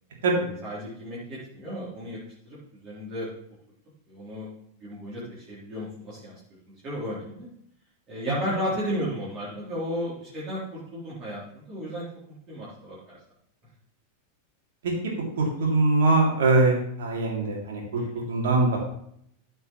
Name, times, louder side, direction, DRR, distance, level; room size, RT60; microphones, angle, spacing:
voice 1, 0.6-2.2 2.5-3.3 4.1-4.5 4.8-6.4 6.7-7.5 8.1-13.2 18.0-18.2, equal, 30° right, -9 dB, 3.7 m, -34 dB
voice 2, 15.0-17.8 18.1-18.8, right 3 dB, 60° right, -2 dB, 3.2 m, -22 dB
14.5 x 5.6 x 3.2 m, 0.69 s
figure-of-eight pair, 90°, 0 cm